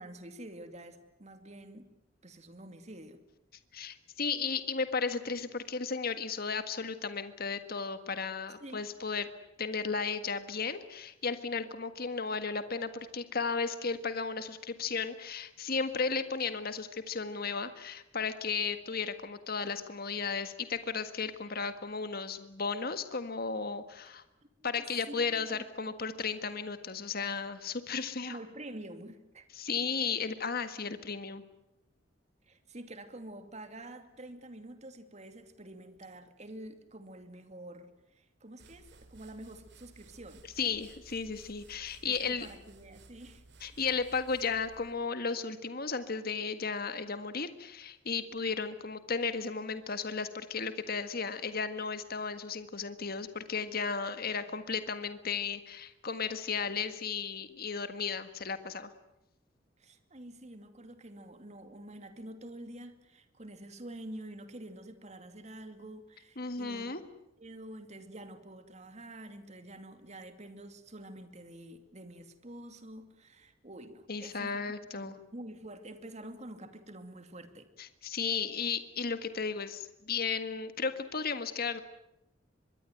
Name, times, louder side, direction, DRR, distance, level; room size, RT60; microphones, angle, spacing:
voice 1, 0.0-1.9 2.2-3.2 8.6-8.8 24.6-25.6 28.2-29.5 32.5-40.4 42.0-43.8 59.8-66.9 67.4-74.6 74.9-77.7, right 1 dB, 35° right, 9 dB, 2.5 m, -48 dB
voice 2, 3.7-9.3 9.6-24.2 24.6-28.4 29.5-31.4 40.6-42.5 43.6-58.9 66.4-67.0 74.1-75.2 77.8-81.8, left 5 dB, 50° left, 10 dB, 1.7 m, -34 dB
sound 1, 38.6-45.1, right 2 dB, 60° right, 2.9 m, -57 dB
24.5 x 22.5 x 9.2 m, 0.85 s
head